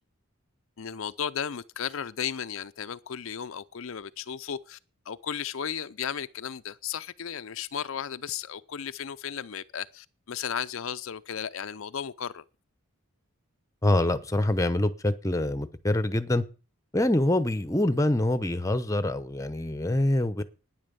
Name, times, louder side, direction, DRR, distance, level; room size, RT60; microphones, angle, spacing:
voice 1, 0.8-4.8 5.1-12.4, left 8 dB, 65° left, 0.5 m, -35 dB
voice 2, 13.8-16.4 16.9-20.4, left 1 dB, 15° left, 0.8 m, -25 dB
11.0 x 9.8 x 6.9 m
head